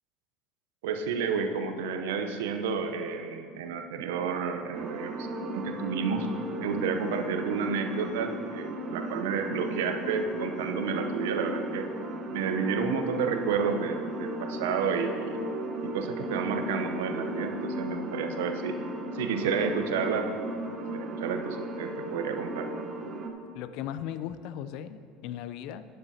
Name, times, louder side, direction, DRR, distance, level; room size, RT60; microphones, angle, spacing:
voice 1, 0.8-5.3 5.5-6.3 6.6-11.9 12.3-15.4 15.8-18.8 19.1-20.3 20.8-22.7, right 5 dB, 80° right, 6 dB, 0.8 m, -30 dB
sound 1, 4.7-23.3, right 1 dB, 40° right, 1.0 m, -36 dB
voice 2, 23.5-25.9, left 10 dB, 65° left, 13 dB, 0.4 m, -37 dB
11.5 x 9.8 x 2.8 m, 2.2 s
hypercardioid pair, 80°, 0 cm